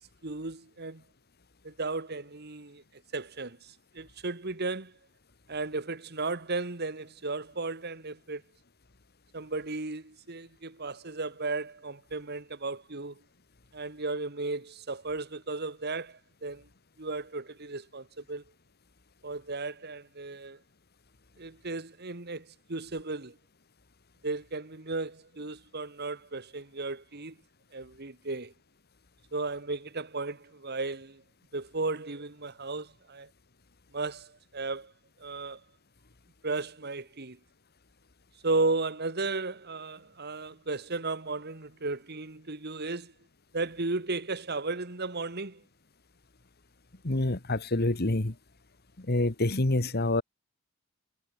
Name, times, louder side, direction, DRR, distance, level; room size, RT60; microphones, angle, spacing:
voice 1, 0.2-1.0 1.6-2.8 3.1-4.9 5.5-8.4 9.3-13.2 13.7-16.7 17.0-18.4 19.2-20.6 21.4-23.4 24.2-27.4 27.7-28.5 29.3-31.2 31.5-33.3 33.9-34.9 35.2-35.6 36.4-37.4 38.4-43.1 43.5-45.6, right 3 dB, 50° right, 2.0 m, -35 dB
voice 2, 47.0-48.3 49.0-50.2, left 2 dB, 50° left, 1.7 m, -27 dB
head